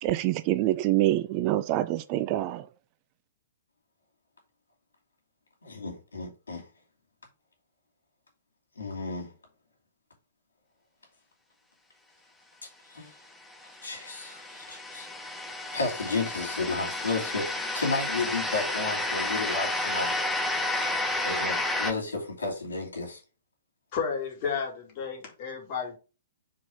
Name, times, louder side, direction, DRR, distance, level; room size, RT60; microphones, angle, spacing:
voice 1, 0.0-2.7, right 15 dB, 35° right, 0.4 m, -26 dB
voice 2, 5.6-6.7 8.8-9.3 12.9-13.1 13.8-15.1 15.7-20.2 20.8-23.2, left 3 dB, 75° left, 2.5 m, -33 dB
sound 1, 13.5-21.9, left 2 dB, 5° left, 0.8 m, -31 dB
voice 3, 23.9-26.0, left 6 dB, 35° left, 2.3 m, -32 dB
4.7 x 4.0 x 5.1 m
figure-of-eight pair, 115°, 0 cm